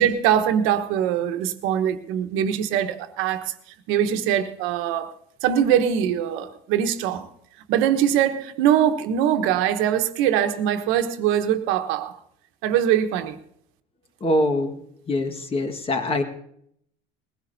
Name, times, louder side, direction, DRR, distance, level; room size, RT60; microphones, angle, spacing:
voice 1, 0.0-3.5 3.9-5.1 5.4-7.3 7.7-12.1 12.6-13.4, right 9 dB, 75° right, 1.2 m, -22 dB
voice 2, 14.2-14.8 15.1-16.2, left 1 dB, 25° left, 1.7 m, -23 dB
20.5 x 16.0 x 2.7 m
cardioid pair, 115°, 21 cm